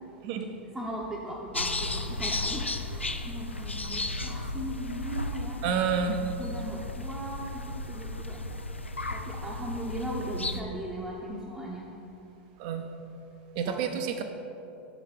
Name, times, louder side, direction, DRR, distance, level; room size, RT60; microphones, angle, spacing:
voice 1, 0.7-5.8 6.2-8.4 9.1-11.9 13.6-13.9, right 1 dB, 10° right, -5 dB, 0.7 m, -38 dB
sound 1, 1.5-10.6, left 2 dB, 90° left, 0.3 m, -34 dB
voice 2, 5.6-6.2 12.6-12.9 13.6-14.2, right 7 dB, 45° right, 6 dB, 0.6 m, -29 dB
6.4 x 5.0 x 4.8 m, 2.9 s
figure-of-eight pair, 90°, 6 cm